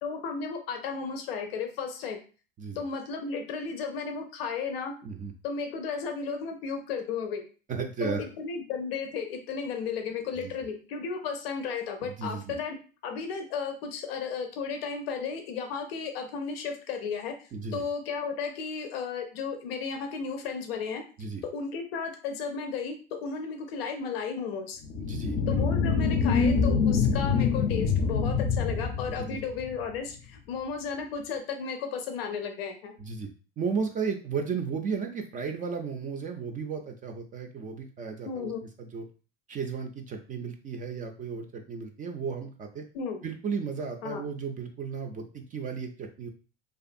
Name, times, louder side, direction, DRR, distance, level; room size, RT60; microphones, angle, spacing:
voice 1, 0.0-2.2 2.8-4.9 5.4-7.4 8.0-12.8 13.0-21.0 21.5-24.8 25.5-32.9 38.3-38.6 42.9-43.2 44.0-44.2, left 5 dB, 80° left, 5 dB, 0.6 m, -34 dB
voice 2, 5.0-5.3 7.7-8.3 10.3-10.5 12.0-12.5 17.5-17.8 21.2-21.4 25.0-25.4 29.1-29.4 33.0-33.3 33.6-38.5 38.8-39.1 39.5-42.8 43.2-46.3, right 5 dB, 30° right, 4 dB, 0.4 m, -34 dB
sound 1, 24.8-29.8, left 5 dB, 40° left, 0.5 m, -25 dB
2.5 x 2.4 x 2.5 m, 0.36 s
hypercardioid pair, 85°, 29 cm